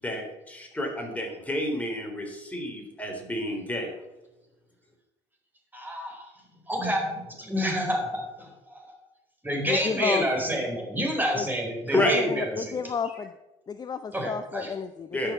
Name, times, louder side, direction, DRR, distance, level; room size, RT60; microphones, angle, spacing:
voice 1, 0.0-3.9 6.8-6.9 11.9-12.1 15.1-15.3, left 1 dB, 10° left, 2 dB, 3.6 m, -29 dB
voice 2, 5.7-6.3 6.7-8.9 9.4-12.7 14.1-14.7, equal, 10° right, 1 dB, 4.4 m, -29 dB
voice 3, 9.7-10.3 11.3-11.5 11.9-13.3 13.7-15.3, left 6 dB, 25° left, 10 dB, 0.6 m, -31 dB
11.5 x 6.8 x 7.2 m, 0.99 s
supercardioid pair, 95°, 15 cm